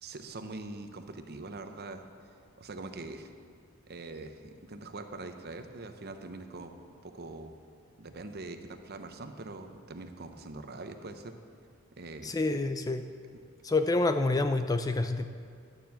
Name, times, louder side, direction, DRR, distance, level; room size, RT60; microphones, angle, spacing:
voice 1, 0.0-2.0 2.6-3.3 3.9-6.7 7.0-7.5 8.0-11.3 11.9-12.3, right 2 dB, 45° right, 7 dB, 0.8 m, -43 dB
voice 2, 12.2-13.1 13.6-15.2, left 2 dB, 15° left, 9 dB, 0.3 m, -27 dB
11.5 x 7.1 x 7.4 m, 2.2 s
head